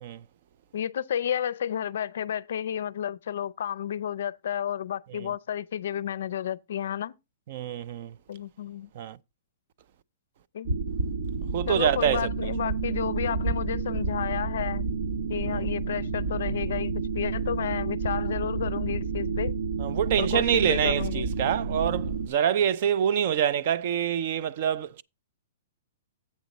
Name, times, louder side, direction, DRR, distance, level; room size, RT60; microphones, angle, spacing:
voice 1, 0.7-7.1 8.3-8.9 10.5-10.7 11.7-14.8 15.3-19.5 20.2-21.2, left 9 dB, 60° left, 0.4 m, -31 dB
voice 2, 7.5-8.1 9.0-9.2 11.5-12.3 15.5-15.7 19.8-25.0, right 9 dB, 40° right, 0.3 m, -26 dB
sound 1, 10.6-22.3, right 4 dB, 75° right, 1.2 m, -30 dB
8.2 x 4.0 x 6.4 m
hypercardioid pair, 175°, 0 cm